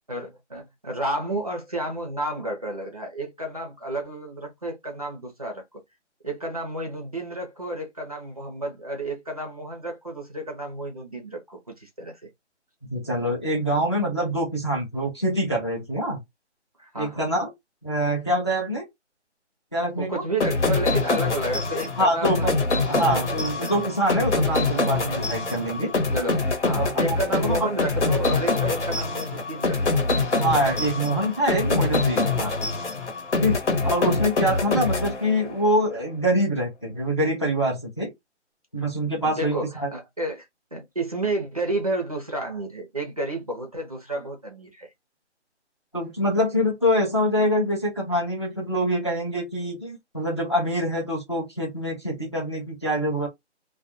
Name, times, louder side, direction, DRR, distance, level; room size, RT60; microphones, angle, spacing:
voice 1, 0.1-5.6 6.2-12.3 16.8-17.3 20.0-22.5 22.8-23.1 23.6-23.7 26.1-29.8 33.8-33.9 39.2-44.9, right 1 dB, 35° right, 0.5 m, -31 dB
voice 2, 12.9-16.2 16.9-17.5 17.8-18.9 19.7-20.2 22.0-22.6 22.9-25.9 26.7-27.7 30.3-32.5 33.4-33.6 33.8-38.1 38.7-39.9 45.9-53.3, equal, 25° left, 0.5 m, -25 dB
sound 1, 20.4-35.7, left 3 dB, 70° left, 1.0 m, -25 dB
2.3 x 2.2 x 2.6 m
figure-of-eight pair, 165°, 36 cm